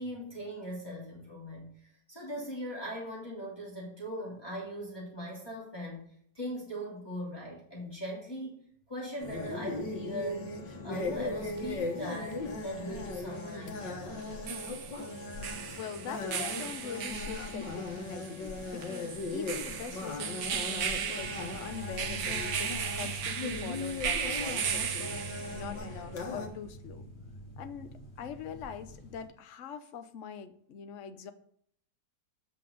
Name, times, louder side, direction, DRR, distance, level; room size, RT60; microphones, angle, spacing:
voice 1, 0.0-1.7 2.1-6.0 6.3-10.5 10.8-14.3, equal, 15° left, -5 dB, 3.1 m, -40 dB
sound 1, 9.2-26.5, left 3 dB, 75° left, 2.0 m, -38 dB
sound 2, 11.6-11.7 14.2-25.8, right 7 dB, 70° right, 1.4 m, -37 dB
voice 2, 15.8-25.3 25.5-27.1 27.6-31.3, left 7 dB, 55° left, 9 dB, 1.0 m, -43 dB
sound 3, 21.2-29.3, right 1 dB, 35° left, 3.1 m, -46 dB
8.6 x 5.7 x 6.5 m, 0.63 s
omnidirectional pair, 1.9 m